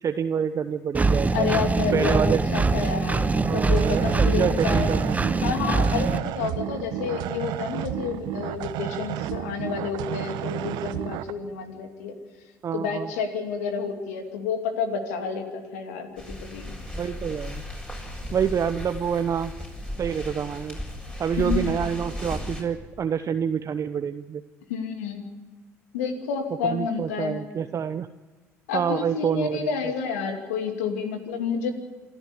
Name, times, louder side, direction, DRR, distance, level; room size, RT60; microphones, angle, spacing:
voice 1, 0.0-1.5 1.9-2.4 3.4-5.4 12.6-13.1 17.0-17.6 18.3-19.5 20.0-20.8 21.2-24.4 26.6-28.1 28.7-29.7, right 7 dB, 40° right, 9 dB, 0.8 m, -27 dB
Engine, 0.9-6.2, right 3 dB, 20° right, 1.1 m, -23 dB
voice 2, 1.3-4.9 5.4-12.2 12.7-16.8 21.4-21.7 24.7-25.2 25.9-27.4 28.7-31.7, left 6 dB, 80° left, 5 dB, 2.7 m, -30 dB
sound 1, 3.7-11.3, right 13 dB, 65° right, 1.0 m, -32 dB
sound 2, 16.2-22.6, left 1 dB, 10° left, 7.1 m, -35 dB
26.5 x 13.0 x 9.9 m, 1.3 s
hypercardioid pair, 60°, 8 cm